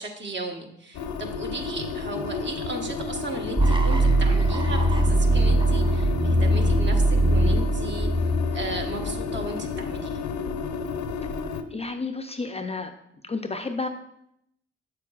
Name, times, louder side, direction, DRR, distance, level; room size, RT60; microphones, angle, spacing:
voice 1, 0.0-8.3 8.5-10.3, right 2 dB, 40° right, 3 dB, 1.3 m, -35 dB
sound 1, 0.9-11.6, left 5 dB, 70° left, 0.6 m, -31 dB
sound 2, 3.6-9.5, right 1 dB, 15° right, 0.8 m, -21 dB
voice 2, 11.4-12.9 13.2-13.9, left 3 dB, 20° left, 6 dB, 0.5 m, -31 dB
7.8 x 6.6 x 2.4 m, 0.78 s
hypercardioid pair, 50°, 30 cm